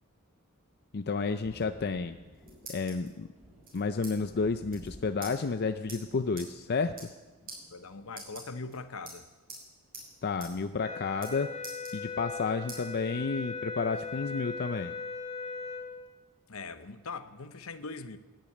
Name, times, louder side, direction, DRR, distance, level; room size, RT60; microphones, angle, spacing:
voice 1, 0.9-2.2 2.7-3.3 3.7-7.1 10.2-11.5 11.9-14.9, left 4 dB, 50° left, 0.5 m, -31 dB
Thunder, 1.0-10.8 11.1-12.2, equal, 15° right, 5.0 m, -57 dB
sound 1, 2.2-3.1 3.6-4.1 4.4-4.5 4.7-4.9 5.2-5.3 5.9-6.0 6.4-6.5 6.9-7.2 7.5-7.6 8.1-8.7 9.1-9.6 9.9-10.1 10.4-10.5 10.8-11.3 11.6-12.3 12.7-12.8 13.3-14.2, right 3 dB, 45° right, 6.9 m, -45 dB
voice 2, 7.4-9.3 16.5-18.2, left 4 dB, 70° left, 0.9 m, -41 dB
sound 2, 10.8-15.9, left 4 dB, 30° left, 3.0 m, -39 dB
13.5 x 10.5 x 9.2 m
head